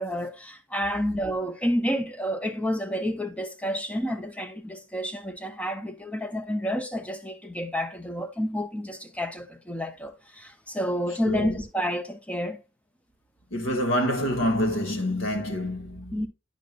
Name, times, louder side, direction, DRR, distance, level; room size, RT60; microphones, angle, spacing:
voice 1, 0.0-12.6 16.1-16.3, equal, 5° left, 0.7 m, -30 dB
voice 2, 11.3-11.6 13.5-16.2, equal, 75° left, 1.8 m, -27 dB
10.5 x 5.2 x 2.4 m
head